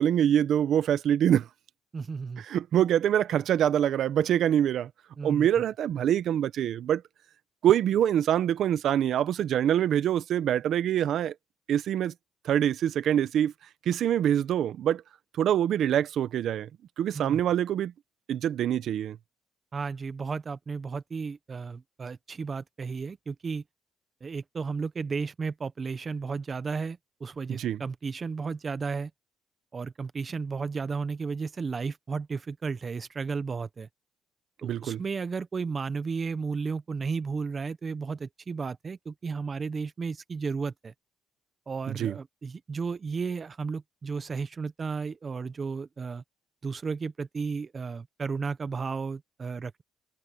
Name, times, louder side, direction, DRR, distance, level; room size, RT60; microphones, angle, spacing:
voice 1, 0.0-1.5 2.4-4.9 5.2-7.0 7.6-11.3 11.7-12.1 12.4-13.5 13.9-15.0 15.4-16.7 17.0-17.9 18.3-19.2 27.5-27.8 34.6-35.0 41.9-42.1, right 10 dB, 70° right, 1.0 m, -25 dB
voice 2, 1.9-2.4 5.2-5.5 17.1-17.4 19.7-23.6 24.2-29.1 29.7-33.9 34.6-40.9 41.7-46.2 46.6-49.8, right 5 dB, 40° right, 0.8 m, -33 dB
cardioid pair, 90°, 0 cm